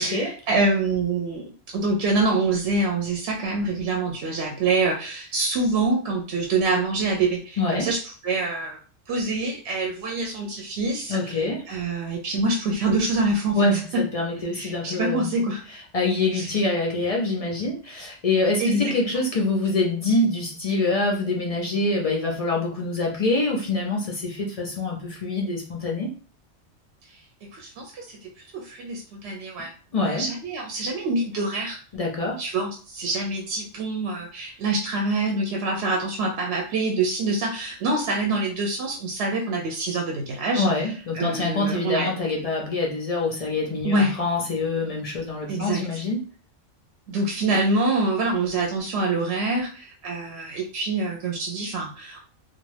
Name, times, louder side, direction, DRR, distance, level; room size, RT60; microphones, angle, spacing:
voice 1, 0.0-8.8 9.1-13.6 13.9-14.0 14.5-15.6 16.3-16.5 18.6-18.9 27.5-28.2 28.5-29.7 30.0-31.8 32.4-40.6 41.1-42.1 43.8-44.2 45.5-45.8 47.1-52.2, right 2 dB, 70° right, 0 dB, 0.8 m, -25 dB
voice 2, 7.6-7.9 11.1-11.6 13.5-15.3 15.7-26.1 29.9-30.3 31.9-32.4 40.6-46.2, left 2 dB, 50° left, -1 dB, 0.4 m, -25 dB
2.4 x 2.2 x 3.2 m, 0.40 s
omnidirectional pair, 1.3 m